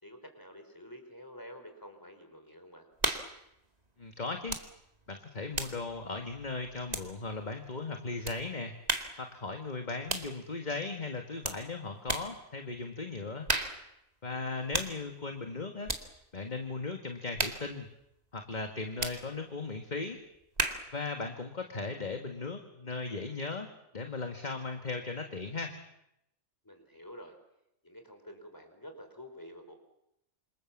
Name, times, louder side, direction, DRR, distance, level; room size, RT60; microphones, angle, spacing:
voice 1, 0.0-2.9 14.3-14.8 26.6-27.3 27.8-29.8, equal, 15° left, 6 dB, 4.7 m, -49 dB
sound 1, 3.0-3.4 4.5-4.7 5.0-7.4 8.2-8.4 8.9-9.2 10.1-10.4 11.4-11.6 12.1-12.4 13.5-13.9 14.7-15.0 15.8-16.1 17.4-17.7 19.0-19.2 20.6-20.9, right 2 dB, 30° right, 2.2 m, -34 dB
voice 2, 4.0-4.6 5.1-8.7 9.2-13.5 14.2-15.9 16.3-17.9 18.3-20.2 20.9-23.7 23.9-25.7, left 3 dB, 30° left, 5 dB, 1.9 m, -37 dB
27.5 x 27.0 x 7.4 m, 0.81 s
omnidirectional pair, 1.4 m